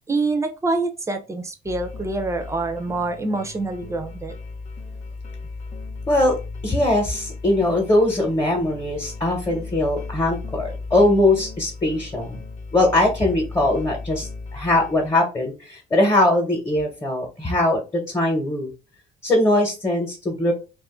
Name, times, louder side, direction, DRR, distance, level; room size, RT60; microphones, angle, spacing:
voice 1, 0.1-4.3, right 3 dB, 15° right, 6 dB, 0.6 m, -26 dB
sound 1, 1.6-15.1, left 3 dB, 45° left, 0.8 m, -36 dB
voice 2, 6.6-12.4 12.7-17.8 18.1-18.7 19.2-20.5, left 1 dB, 20° left, 0 dB, 1.0 m, -21 dB
2.6 x 2.5 x 3.7 m, 0.30 s
cardioid pair, 110°, 17 cm